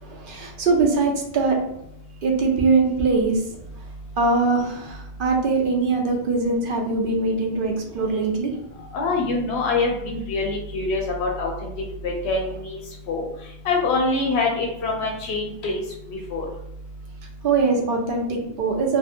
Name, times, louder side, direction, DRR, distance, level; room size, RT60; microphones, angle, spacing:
voice 1, 0.0-1.6 2.2-3.4 4.2-8.5 17.4-19.0, right 4 dB, 60° right, 1 dB, 0.7 m, -22 dB
voice 2, 8.9-11.5 12.0-12.8 13.1-13.2 13.6-15.8 16.1-16.5, left 3 dB, 85° left, 0 dB, 0.9 m, -24 dB
2.6 x 2.5 x 2.5 m, 0.80 s
omnidirectional pair, 1.1 m